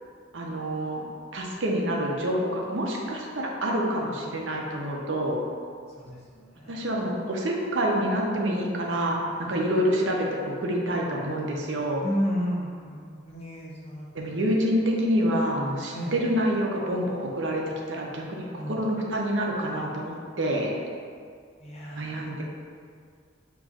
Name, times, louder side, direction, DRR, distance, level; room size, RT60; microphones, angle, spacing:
voice 1, 0.3-1.0 1.3-5.4 6.7-10.3 10.6-12.0 14.1-20.7 21.9-22.4, equal, 80° right, -1 dB, 0.7 m, -27 dB
voice 2, 6.0-6.9 9.5-9.6 12.0-14.4 15.9-16.1 18.5-18.8 21.6-22.3, equal, 35° left, -5 dB, 0.8 m, -33 dB
6.6 x 3.0 x 2.4 m, 2.1 s
head